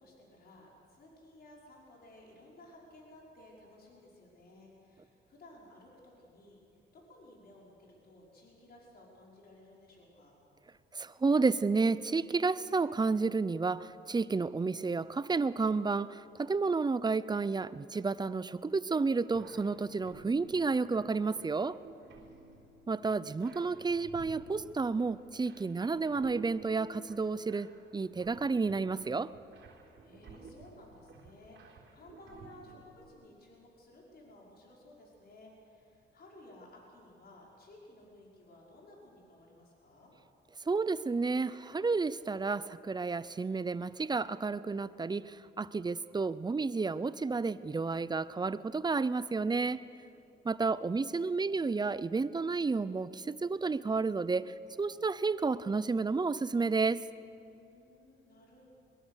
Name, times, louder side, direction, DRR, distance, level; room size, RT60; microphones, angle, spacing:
voice 1, 0.0-6.6 6.9-10.4 22.2-22.8 30.0-40.1 57.5-58.6, left 1 dB, 50° left, -3 dB, 5.5 m, -56 dB
voice 2, 10.9-21.7 22.9-27.7 27.9-29.3 40.7-49.8 50.4-57.0, right 4 dB, 20° right, 16 dB, 0.6 m, -31 dB
sound 1, 19.3-33.1, right 4 dB, 75° right, 3.8 m, -53 dB
22.0 x 22.0 x 6.6 m, 2.7 s
cardioid pair, 90°, 20 cm